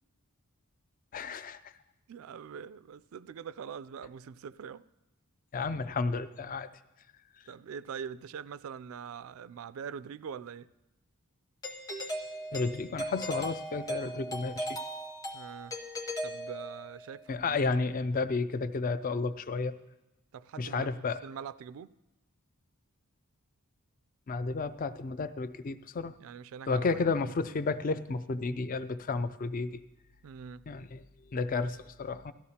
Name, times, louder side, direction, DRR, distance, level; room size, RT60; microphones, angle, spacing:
voice 1, 1.1-1.6 5.5-6.7 12.5-14.8 17.3-19.8 20.6-21.2 24.3-26.1 26.7-29.8 30.7-31.0 31.3-32.3, left 4 dB, 40° left, 0.4 m, -32 dB
voice 2, 2.1-4.8 7.5-10.7 15.3-15.7 16.2-17.7 20.3-20.9 21.2-21.9 26.2-26.9 30.2-30.6, right 7 dB, 70° right, 0.3 m, -43 dB
Doorbell, 11.6-17.1, equal, 15° left, 0.8 m, -38 dB
17.5 x 13.5 x 2.8 m
head